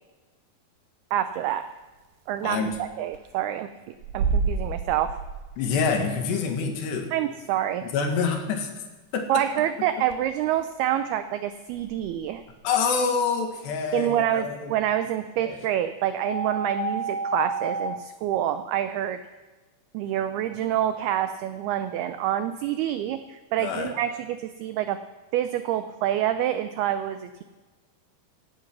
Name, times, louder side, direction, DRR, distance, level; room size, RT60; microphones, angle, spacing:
voice 1, 1.1-1.6 2.3-5.1 7.1-7.8 9.3-12.4 13.9-19.2 19.9-25.0 25.3-27.4, right 11 dB, 85° right, 10 dB, 2.2 m, -27 dB
sound 1, 1.9-2.0 2.3-2.4 2.7-2.8 3.1-3.3 3.9-5.8 6.4-6.5 7.3-7.4 8.4-8.5 8.7-8.9 9.3-9.5 10.1-10.2 10.6-10.8 11.6-12.6, right 5 dB, 65° right, 2.7 m, -30 dB
voice 2, 2.4-2.8 5.6-7.1 7.8-8.7 9.1-9.3 12.6-14.7 15.4-15.6 23.6-23.9, left 5 dB, 70° left, 3 dB, 3.8 m, -26 dB
sound 2, 16.3-17.9, right 2 dB, 35° left, 5.2 m, -29 dB
17.0 x 12.5 x 6.1 m, 1.3 s
omnidirectional pair, 5.3 m